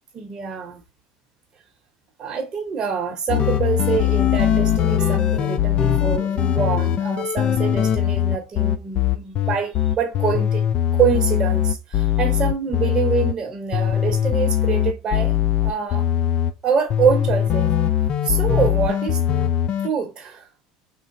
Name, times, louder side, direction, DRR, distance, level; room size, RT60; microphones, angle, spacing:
voice 1, 0.1-0.8 2.2-10.6 10.9-16.1 16.6-17.7 18.2-19.2 19.8-20.5, right 6 dB, 40° right, 0.8 m, -25 dB
sound 1, 3.3-13.3 13.7-16.5 16.9-19.9, left 10 dB, 45° left, 0.3 m, -21 dB
3.8 x 2.0 x 2.5 m
supercardioid pair, 105°, 2 cm